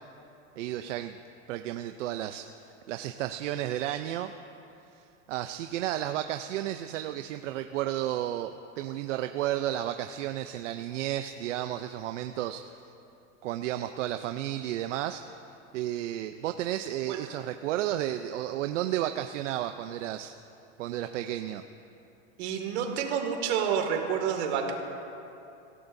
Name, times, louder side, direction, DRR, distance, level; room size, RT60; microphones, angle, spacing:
voice 1, 0.6-1.2 1.5-4.3 4.9-12.7 13.4-15.2 15.7-20.3 20.8-21.6, right 12 dB, 80° right, 7 dB, 0.7 m, -32 dB
voice 2, 22.4-24.7, right 7 dB, 60° right, 3 dB, 2.3 m, -29 dB
25.0 x 16.0 x 2.7 m, 2.7 s
supercardioid pair, 160°, 37 cm